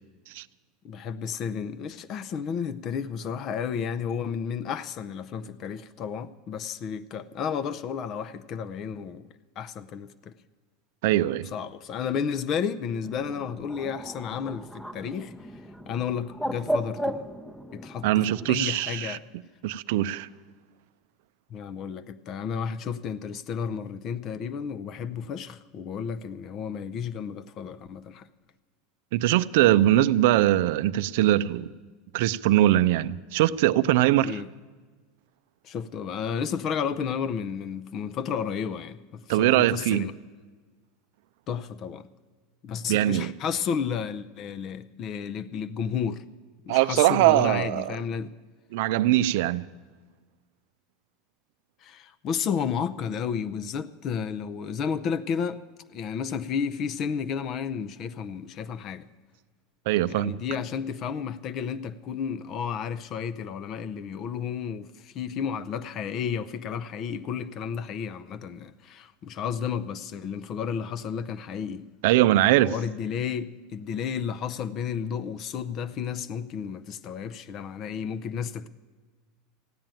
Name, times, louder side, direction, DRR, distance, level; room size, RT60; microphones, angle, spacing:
voice 1, 0.8-9.3 9.6-10.3 11.5-15.3 15.9-17.2 17.7-19.2 21.5-28.3 34.2-34.5 35.6-40.1 41.5-42.1 42.6-46.2 46.7-48.3 51.8-55.6 55.9-59.1 60.1-71.9 72.6-78.7, left 7 dB, 40° left, 0.5 m, -32 dB
voice 2, 11.0-11.5 18.0-19.2 19.6-20.3 29.1-31.7 32.1-34.4 39.3-40.1 42.9-43.3 46.7-47.9 48.7-49.7 59.9-60.4 72.0-72.7, right 14 dB, 70° right, 0.5 m, -22 dB
Bird, 13.0-18.5, equal, 5° left, 0.7 m, -35 dB
15.5 x 9.0 x 9.0 m
supercardioid pair, 140°, 0 cm